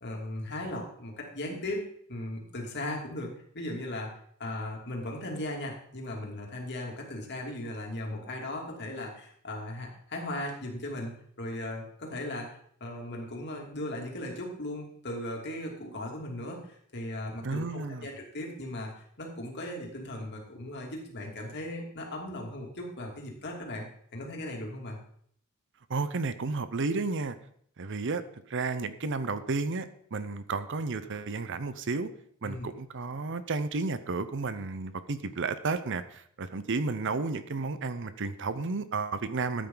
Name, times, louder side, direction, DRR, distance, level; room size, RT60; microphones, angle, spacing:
voice 1, 0.0-4.1 4.4-11.1 11.4-12.5 12.8-18.9 19.2-23.9 24.1-25.0 32.4-32.7, left 1 dB, 55° left, 0 dB, 2.9 m, -37 dB
voice 2, 17.4-18.1 25.9-27.4 27.8-28.2 28.5-32.1 32.4-39.7, right 3 dB, 60° right, 13 dB, 0.8 m, -32 dB
13.5 x 9.1 x 3.9 m, 0.64 s
head